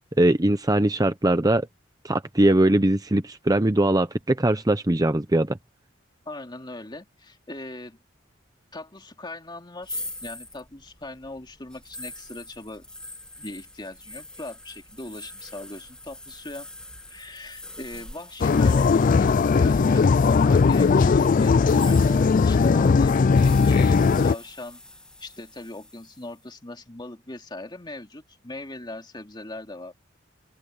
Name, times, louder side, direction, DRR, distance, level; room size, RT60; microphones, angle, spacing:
voice 1, 0.2-1.7 2.0-5.6, right 1 dB, 20° right, 0.8 m, -21 dB
voice 2, 6.3-8.0 8.7-12.8 13.4-16.7 17.1-24.8 25.2-30.2, left 2 dB, 25° left, 2.6 m, -40 dB
sound 1, 9.8-20.8 21.5-26.4, left 1 dB, 5° left, 1.7 m, -43 dB
sound 2, 18.4-24.4, left 4 dB, 45° left, 0.4 m, -18 dB
open air
head